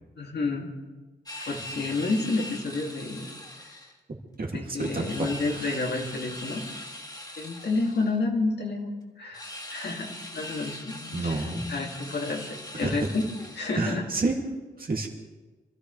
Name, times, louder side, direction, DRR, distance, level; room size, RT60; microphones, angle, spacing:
voice 1, 0.2-0.7 1.4-3.3 4.5-6.7 7.4-8.9 9.2-13.2 13.6-14.0, left 3 dB, 60° left, 0 dB, 2.5 m, -30 dB
sound 1, 1.3-3.9 4.8-8.2 9.3-14.0, left 1 dB, 20° left, 1.7 m, -41 dB
voice 2, 4.4-5.7 11.1-11.6 12.8-13.0 13.8-14.4 14.8-15.1, right 3 dB, 50° right, 0 dB, 2.5 m, -30 dB
26.5 x 13.5 x 3.3 m, 1.3 s
wide cardioid pair, 125°, 19 cm